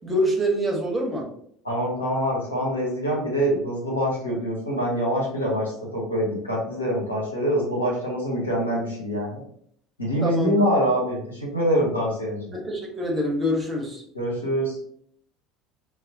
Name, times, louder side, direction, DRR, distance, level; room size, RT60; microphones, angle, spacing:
voice 1, 0.0-1.3 10.2-10.5 12.5-14.0, equal, 20° right, 0 dB, 0.9 m, -25 dB
voice 2, 1.6-9.4 10.0-12.6 14.1-14.8, equal, 80° left, -3 dB, 1.0 m, -25 dB
4.1 x 2.0 x 2.6 m, 0.65 s
figure-of-eight pair, 65°, 0 cm